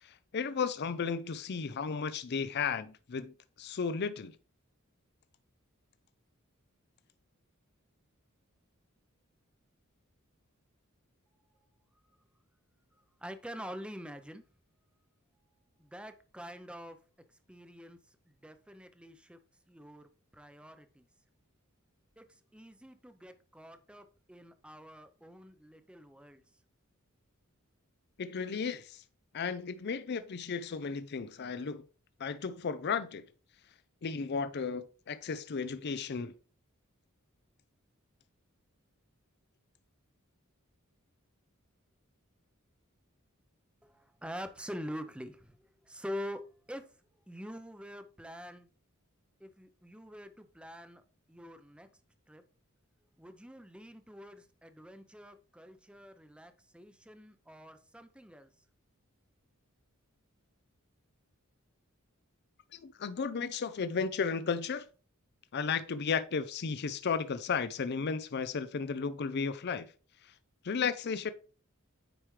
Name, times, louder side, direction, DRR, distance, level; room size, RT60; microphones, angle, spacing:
voice 1, 0.0-4.4 28.2-29.0 29.3-31.8 32.2-33.3 34.0-36.3 62.7-64.9 65.5-69.9 70.2-70.3 70.6-71.3, left 5 dB, 50° left, 0.5 m, -34 dB
voice 2, 12.9-14.4 15.8-17.0 17.5-18.0 18.3-19.4 19.7-21.1 22.2-26.4 43.8-46.9 47.3-48.7 49.4-51.0 51.3-51.9 52.3-52.4 53.2-58.5, equal, 5° right, 0.6 m, -46 dB
9.1 x 4.8 x 3.2 m
head